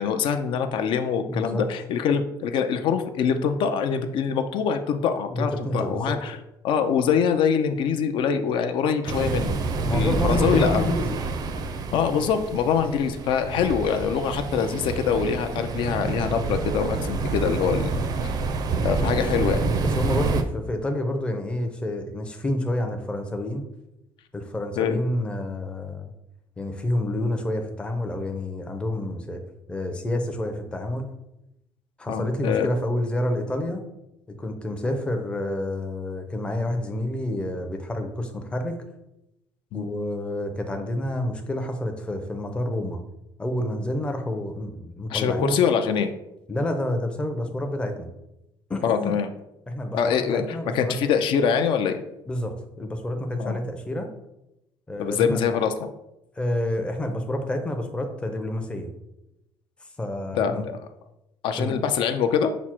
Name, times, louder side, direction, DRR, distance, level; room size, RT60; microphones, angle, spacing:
voice 1, 0.0-6.4 6.6-9.5 9.9-10.9 11.9-18.3 18.8-19.6 24.8-25.0 32.1-32.7 39.7-39.9 45.1-46.1 48.8-49.3 49.9-52.0 53.4-53.6 55.0-55.7 60.3-60.8 61.4-62.5, left 7 dB, 65° left, 8 dB, 0.4 m, -24 dB
voice 2, 1.3-1.6 5.3-6.2 9.8-11.2 17.8-18.1 19.9-23.6 24.3-26.1 26.6-29.4 29.7-31.1 32.0-33.8 34.4-38.8 39.7-43.0 43.4-45.6 46.5-48.1 48.7-49.1 49.7-51.0 52.3-54.1 54.9-55.4 56.4-58.9 60.0-60.7 61.6-61.7, left 1 dB, 10° left, 5 dB, 0.5 m, -28 dB
sound 1, 9.1-20.4, right 3 dB, 45° right, 0.4 m, -27 dB
6.0 x 2.0 x 4.3 m, 0.88 s
cardioid pair, 150°, 9 cm